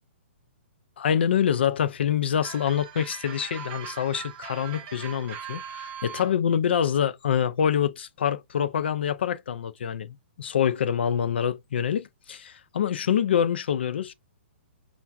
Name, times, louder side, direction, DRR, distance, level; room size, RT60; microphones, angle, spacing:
voice 1, 1.0-14.1, left 8 dB, 55° left, 0.4 m, -26 dB
sound 1, 2.4-6.3, right 8 dB, 20° right, 0.6 m, -40 dB
5.6 x 2.3 x 2.4 m
hypercardioid pair, 175°, 7 cm